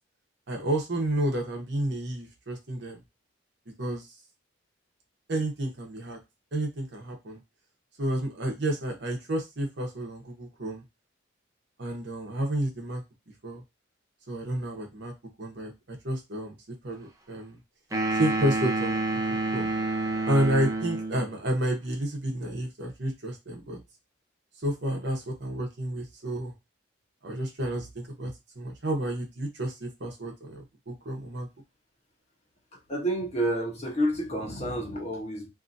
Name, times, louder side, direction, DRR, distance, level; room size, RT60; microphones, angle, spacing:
voice 1, 0.5-3.0 3.8-4.1 5.3-6.2 6.5-7.4 8.0-10.8 11.8-13.0 13.4-13.6 14.3-15.1 15.4-15.7 16.0-16.5 16.8-17.6 18.1-19.0 19.5-19.7 20.3-23.8 24.6-26.5 27.2-28.3 28.6-31.5, right 1 dB, 60° right, 2 dB, 0.9 m, -30 dB
sound 1, 17.9-21.3, right 2 dB, 15° right, 0.5 m, -28 dB
voice 2, 32.7-35.5, right 1 dB, 35° left, 0 dB, 1.0 m, -29 dB
2.8 x 2.6 x 2.6 m, 0.23 s
head